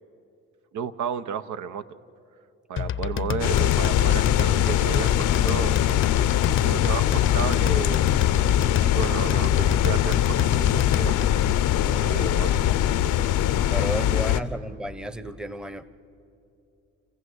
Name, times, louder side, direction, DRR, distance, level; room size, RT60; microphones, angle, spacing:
voice 1, 0.7-1.9 2.7-5.8 6.5-11.3 11.9-12.6, right 7 dB, 75° right, 11 dB, 0.8 m, -33 dB
sound 1, 2.8-11.5, left 9 dB, 40° left, 0.6 m, -29 dB
sound 2, 3.4-14.4, left 11 dB, 80° left, 0.7 m, -22 dB
voice 2, 11.9-12.3 13.7-15.8, right 1 dB, 5° right, 14 dB, 0.8 m, -33 dB
27.5 x 15.0 x 8.0 m, 2.7 s
cardioid pair, 90°, 30 cm